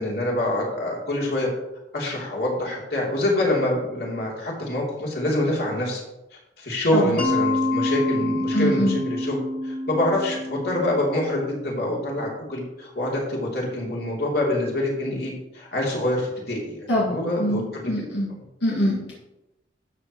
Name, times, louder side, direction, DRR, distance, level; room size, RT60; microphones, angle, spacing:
voice 1, 0.0-1.5 1.9-6.0 6.6-9.4 9.6-17.9, left 1 dB, 60° left, -3 dB, 3.2 m, -26 dB
Mallet percussion, 7.2-11.9, left 1 dB, 25° left, 2.3 m, -27 dB
voice 2, 8.5-9.0 16.9-18.3 18.6-19.1, equal, 90° left, -4 dB, 2.1 m, -24 dB
12.5 x 8.1 x 3.1 m, 0.93 s
head